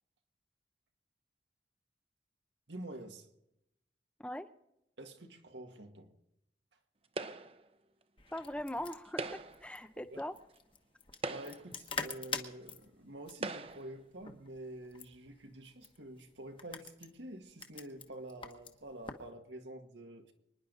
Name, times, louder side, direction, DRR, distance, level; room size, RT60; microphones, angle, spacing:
voice 1, 2.7-3.3 5.0-6.1 10.0-10.2 11.3-20.3, right 1 dB, 85° right, 1.8 m, -48 dB
sound 1, 7.2-7.7 9.0-9.7 10.6-10.7 11.1-11.8 12.7-12.8 13.4-13.9, right 3 dB, 30° right, 0.7 m, -41 dB
sound 2, 8.2-19.3, left 5 dB, 30° left, 1.2 m, -46 dB
voice 2, 8.3-10.4, left 1 dB, 5° left, 0.5 m, -41 dB
25.0 x 10.5 x 3.9 m
head